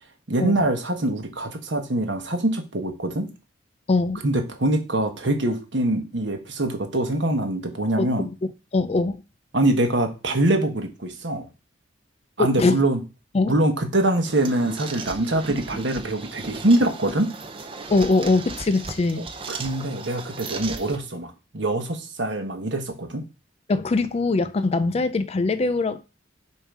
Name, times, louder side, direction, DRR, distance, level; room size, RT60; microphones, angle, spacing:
voice 1, 0.3-3.3 4.2-8.3 9.5-11.5 12.4-13.0 13.5-17.3 19.2-23.2, right 1 dB, 65° right, 1.2 m, -24 dB
voice 2, 3.9-4.2 8.0-8.1 8.7-9.2 12.4-12.8 13.3-13.5 17.9-19.3 23.7-26.1, left 3 dB, 35° left, 0.4 m, -22 dB
sound 1, 14.2-21.0, right 3 dB, 30° right, 0.6 m, -36 dB
7.1 x 2.7 x 4.7 m
head